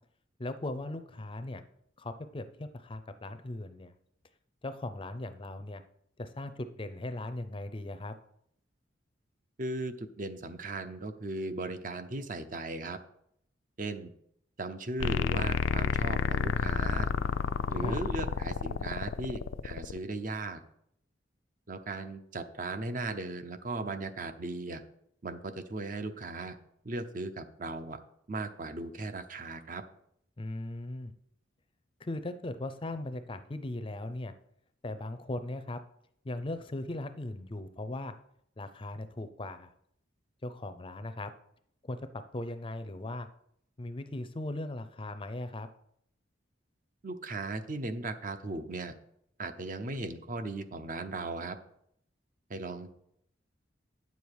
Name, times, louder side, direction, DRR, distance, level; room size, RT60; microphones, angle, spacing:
voice 1, 0.4-1.6 2.0-3.9 4.6-5.8 6.2-8.1 17.8-18.0 30.4-31.1 32.0-34.3 34.8-35.8 36.2-38.1 38.6-39.7 40.4-41.3 41.8-42.1 42.3-43.3 43.8-45.7, left 2 dB, 25° left, 10 dB, 0.5 m, -38 dB
voice 2, 9.6-13.0 13.8-14.1 14.6-17.1 17.7-20.6 21.7-24.8 25.2-26.6 26.8-28.0 28.3-29.8 47.0-48.9 49.4-51.6 52.5-52.9, right 2 dB, 45° right, 9 dB, 0.7 m, -37 dB
sound 1, 15.0-20.0, left 5 dB, 90° left, 0.4 m, -30 dB
9.6 x 7.0 x 4.8 m, 0.72 s
head